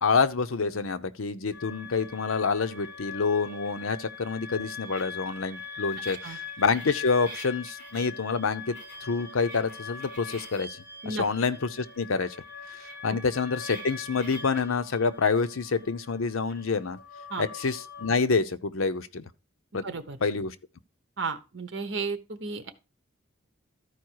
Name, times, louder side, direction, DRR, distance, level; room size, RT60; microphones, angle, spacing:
voice 1, 0.0-12.4 13.0-17.0 17.4-19.2 19.7-19.8 20.2-20.6, left 4 dB, 85° left, 0.7 m, -27 dB
sound 1, 1.5-18.2, left 4 dB, 55° left, 6.9 m, -42 dB
voice 2, 19.8-20.2 21.2-22.7, right 4 dB, 60° right, 1.1 m, -33 dB
13.0 x 4.7 x 4.7 m
head